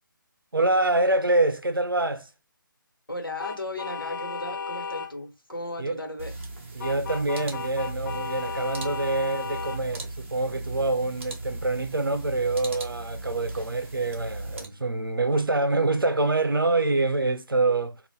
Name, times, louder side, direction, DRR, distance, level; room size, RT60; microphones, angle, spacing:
voice 1, 0.5-2.3 5.8-6.0 6.7-18.0, right 2 dB, 85° right, 0.6 m, -25 dB
voice 2, 3.1-6.3, left 1 dB, 90° left, 1.1 m, -35 dB
sound 1, 3.4-5.1 6.8-9.8, left 5 dB, 60° left, 0.6 m, -34 dB
sound 2, 6.2-14.6, right 2 dB, 35° right, 0.9 m, -37 dB
2.6 x 2.4 x 3.4 m
figure-of-eight pair, 145°, 11 cm